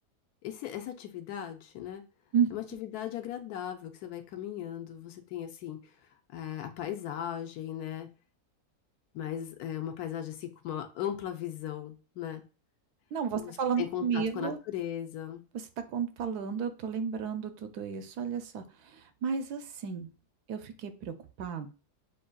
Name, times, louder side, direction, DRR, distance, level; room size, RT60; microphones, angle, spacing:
voice 1, 0.4-2.0 2.5-5.8 6.3-8.1 9.1-12.4 13.4-15.4, left 10 dB, 75° left, 6 dB, 1.1 m, -37 dB
voice 2, 13.1-14.6 15.5-15.6 15.9-20.1 20.5-21.7, right 7 dB, 75° right, 9 dB, 1.1 m, -32 dB
7.1 x 2.6 x 2.2 m, 0.35 s
omnidirectional pair, 1.7 m